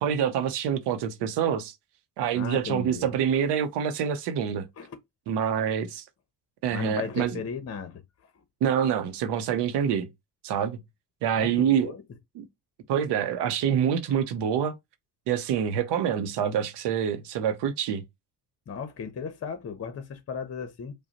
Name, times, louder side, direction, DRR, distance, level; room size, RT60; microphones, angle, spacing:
voice 1, 0.0-1.7 2.2-4.7 5.3-6.0 6.6-7.4 8.6-10.1 10.4-10.8 11.2-11.9 12.4-12.5 12.9-14.7 15.3-18.0, right 8 dB, 80° right, 0.7 m, -26 dB
voice 2, 2.3-3.4 4.8-5.0 6.7-8.0 11.4-12.0 14.1-14.2 18.7-20.9, left 6 dB, 35° left, 0.8 m, -36 dB
4.9 x 2.2 x 2.8 m
cardioid pair, 85°, 40 cm